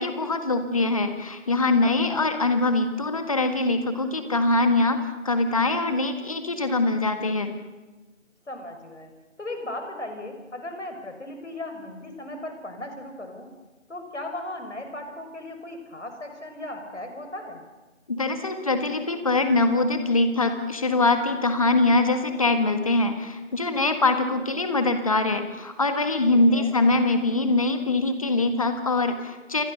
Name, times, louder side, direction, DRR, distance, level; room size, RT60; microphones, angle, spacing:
voice 1, 0.0-5.0 5.2-7.5 18.1-29.6, left 2 dB, 25° left, 8 dB, 1.7 m, -23 dB
voice 2, 1.8-2.3 8.5-9.1 9.4-13.5 13.9-17.6 26.3-26.7, left 1 dB, 65° left, 5 dB, 6.2 m, -37 dB
28.5 x 24.0 x 6.7 m, 1.2 s
figure-of-eight pair, 160°, 38 cm